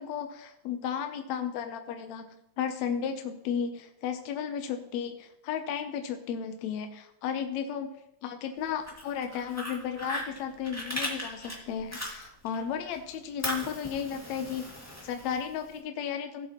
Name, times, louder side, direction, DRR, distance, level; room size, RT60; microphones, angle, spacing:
voice 1, 0.0-7.9 8.2-14.7 15.0-16.5, left 8 dB, 75° left, 6 dB, 1.9 m, -34 dB
Fire, 8.7-12.6 12.9-15.7, equal, 5° left, 1.2 m, -38 dB
17.5 x 7.4 x 2.9 m, 0.83 s
omnidirectional pair, 3.5 m